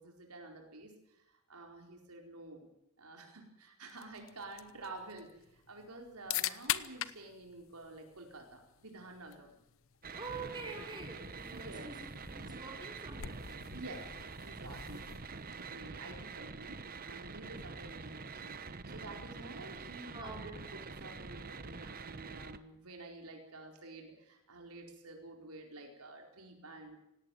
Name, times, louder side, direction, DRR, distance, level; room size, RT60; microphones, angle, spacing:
voice 1, 0.0-2.7 3.0-9.5 11.5-11.9 13.7-14.1 14.4-27.0, right 2 dB, 85° right, 2 dB, 4.5 m, -50 dB
sound 1, 3.9-15.8, left 11 dB, 60° left, 0.9 m, -44 dB
sound 2, 10.0-22.6, right 4 dB, 40° right, 1.0 m, -46 dB
voice 2, 10.1-13.9 20.1-20.6, right 3 dB, 20° right, 1 dB, 5.1 m, -46 dB
18.0 x 18.0 x 9.3 m, 0.82 s
head